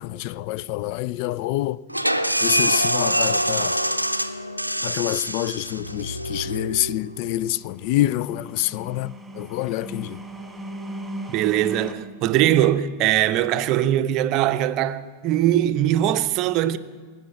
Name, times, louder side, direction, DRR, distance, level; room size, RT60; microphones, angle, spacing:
voice 1, 0.0-1.8 2.4-3.7 4.8-9.1 9.4-10.2, left 15 dB, 45° left, 0.3 m, -26 dB
sound 1, 1.9-7.4, equal, 90° right, 0.6 m, -25 dB
sound 2, 7.3-11.9, right 1 dB, 5° right, 1.9 m, -38 dB
voice 2, 11.3-16.8, right 12 dB, 40° right, 0.6 m, -21 dB
19.0 x 7.8 x 7.7 m
figure-of-eight pair, 90°, 0 cm